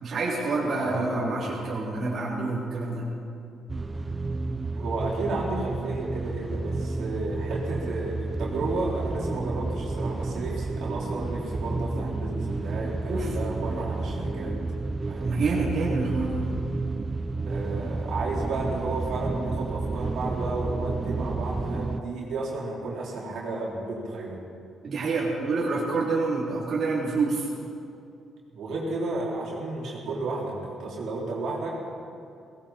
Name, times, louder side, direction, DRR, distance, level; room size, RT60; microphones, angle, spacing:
voice 1, 0.0-3.1 13.1-13.4 15.2-16.4 24.8-27.5, right 3 dB, 55° right, -6 dB, 3.2 m, -27 dB
voice 2, 0.7-1.5 4.7-14.6 15.1-15.3 17.4-24.4 28.5-31.8, right 2 dB, 75° right, -4 dB, 3.8 m, -32 dB
sound 1, 3.7-22.0, right 3 dB, 25° right, 0.5 m, -31 dB
17.5 x 17.5 x 4.4 m, 2.5 s
cardioid pair, 90°, 0 cm